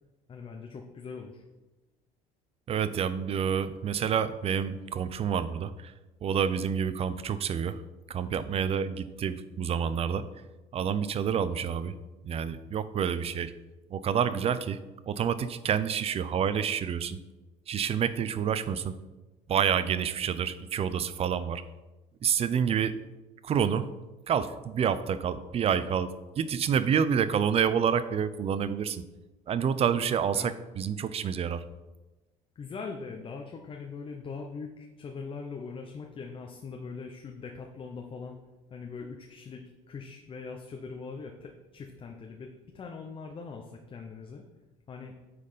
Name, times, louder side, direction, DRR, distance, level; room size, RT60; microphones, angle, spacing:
voice 1, 0.3-1.4 30.3-30.5 32.6-38.4 38.7-39.6 39.9-44.4 44.9-45.1, left 4 dB, 35° left, 3 dB, 0.9 m, -41 dB
voice 2, 2.7-5.9 6.2-7.8 8.1-10.2 10.7-11.9 12.2-13.5 13.9-14.8 15.1-17.2 17.7-18.9 19.5-21.6 22.2-23.0 23.4-23.9 24.3-29.0 29.5-31.6, right 7 dB, 40° right, 14 dB, 0.6 m, -28 dB
9.2 x 4.3 x 5.1 m, 1.1 s
cardioid pair, 105°, 16 cm